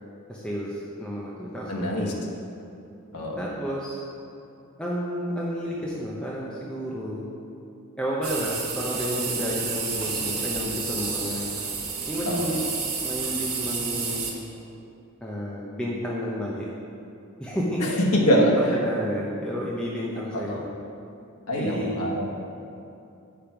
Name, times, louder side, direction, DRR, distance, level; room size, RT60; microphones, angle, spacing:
voice 1, 0.3-2.2 3.4-4.0 4.8-7.2 8.0-11.5 12.1-12.6 13.0-14.4 15.2-16.7 17.4-20.7 21.5-22.0, equal, 5° left, -6 dB, 0.8 m, -31 dB
voice 2, 1.7-2.1 3.1-3.4 12.3-12.6 17.8-18.8 20.3-20.6 21.5-22.3, equal, 85° left, -1 dB, 1.3 m, -24 dB
sound 1, 8.2-14.3, right 5 dB, 70° right, 1.4 m, -30 dB
8.9 x 5.1 x 5.8 m, 2.7 s
head